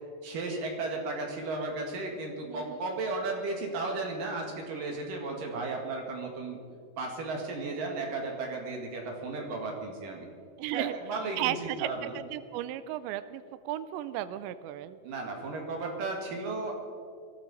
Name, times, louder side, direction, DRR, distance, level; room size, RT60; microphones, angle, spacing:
voice 1, 0.2-6.6 7.0-10.3 10.7-12.1 15.0-16.8, right 3 dB, 55° right, 1 dB, 3.1 m, -34 dB
voice 2, 2.5-2.8 10.6-10.9 11.4-15.0, right 13 dB, 90° right, 13 dB, 2.8 m, -35 dB
22.5 x 13.5 x 4.1 m, 2.1 s
omnidirectional pair, 5.0 m